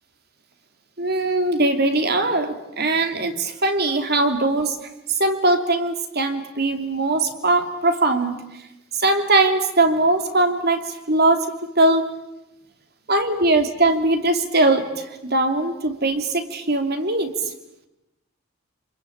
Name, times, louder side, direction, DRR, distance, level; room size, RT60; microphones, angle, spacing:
voice 1, 1.0-4.8 5.1-8.4 8.9-11.5 11.8-12.1 13.1-17.5, right 2 dB, 50° right, 6 dB, 2.9 m, -20 dB
29.0 x 22.0 x 8.8 m, 0.91 s
head